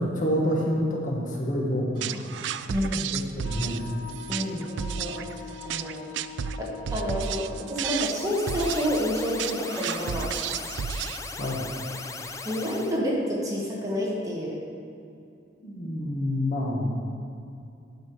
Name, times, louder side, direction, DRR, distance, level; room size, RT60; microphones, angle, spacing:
voice 1, 0.0-2.2 3.1-3.8 11.4-11.7 15.6-16.9, equal, 45° left, -2 dB, 1.4 m, -27 dB
sound 1, 2.0-11.5, right 8 dB, 65° right, 0.3 m, -32 dB
voice 2, 2.7-3.1 4.3-6.1 6.6-10.4 12.4-14.6, equal, 20° right, -4 dB, 1.5 m, -29 dB
Wind instrument woodwind instrument, 3.4-8.6, left 6 dB, 75° left, 1.4 m, -43 dB
sound 2, 7.9-13.0, left 4 dB, 15° left, 0.4 m, -38 dB
9.4 x 6.7 x 4.8 m, 2.5 s
head